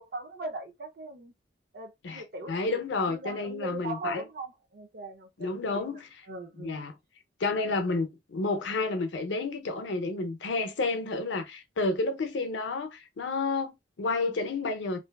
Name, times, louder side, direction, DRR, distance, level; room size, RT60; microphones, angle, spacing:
voice 1, 0.0-1.3 1.7-6.0 6.3-6.9, right 2 dB, 55° right, 0.5 m, -40 dB
voice 2, 2.0-4.2 5.4-6.0 6.6-6.9 7.4-15.0, left 3 dB, 75° left, 0.5 m, -30 dB
2.5 x 2.3 x 2.2 m
head